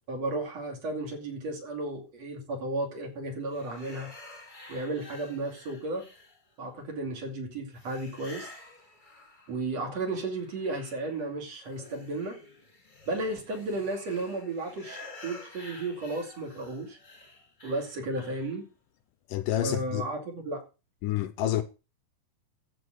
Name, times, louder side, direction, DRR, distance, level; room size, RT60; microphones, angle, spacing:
voice 1, 0.1-4.1 4.7-6.1 6.6-8.5 9.5-12.4 13.1-17.0 17.6-18.7 19.6-20.6, right 2 dB, 45° right, 3.6 m, -34 dB
sound 1, 3.5-6.7 7.8-9.8 10.1-18.6, left 2 dB, 15° left, 2.0 m, -50 dB
voice 2, 19.3-20.1 21.0-21.6, left 12 dB, 75° left, 2.2 m, -28 dB
14.0 x 5.3 x 6.3 m
omnidirectional pair, 4.2 m